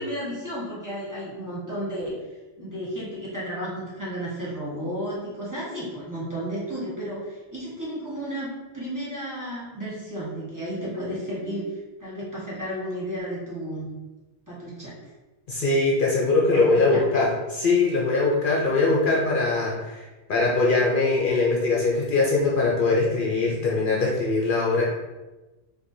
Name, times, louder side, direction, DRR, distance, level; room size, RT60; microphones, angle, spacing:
voice 1, 0.0-2.1 2.6-13.9 14.5-15.1 16.5-17.0 18.5-19.0, equal, 20° right, -8 dB, 1.1 m, -33 dB
voice 2, 15.5-24.8, left 3 dB, 60° left, -3 dB, 0.8 m, -22 dB
4.4 x 2.6 x 2.6 m, 1.1 s
omnidirectional pair, 1.1 m